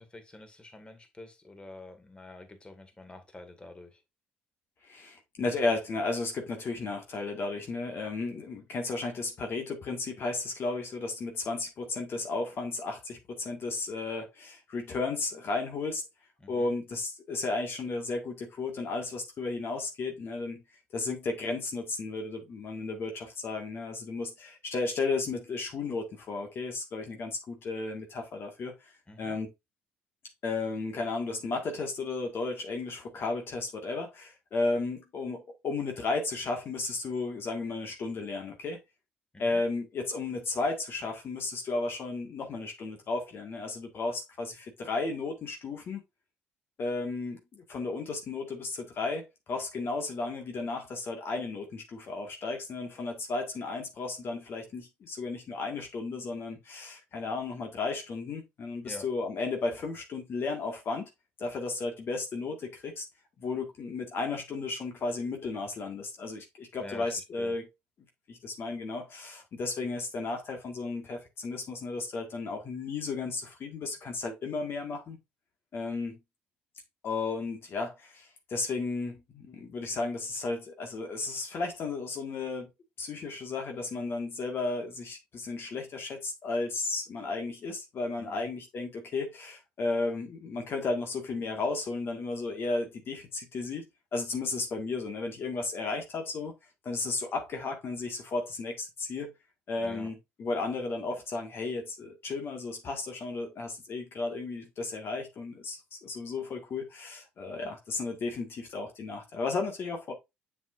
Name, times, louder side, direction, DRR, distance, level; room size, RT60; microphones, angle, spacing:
voice 1, 0.0-4.0 16.4-16.7 29.1-29.4 39.3-39.6 58.8-59.1 66.8-67.5 88.2-88.5 99.8-100.1, left 2 dB, 20° left, 2.1 m, -47 dB
voice 2, 4.8-16.0 16.5-20.6 20.9-29.5 30.4-38.8 39.4-46.0 46.8-61.1 61.4-63.0 63.4-67.7 68.3-75.2 75.7-76.2 77.0-82.7 83.0-93.8 94.1-96.5 96.8-99.3 99.7-110.1, left 3 dB, 55° left, 1.8 m, -34 dB
7.0 x 6.4 x 2.6 m
supercardioid pair, 65°, 5 cm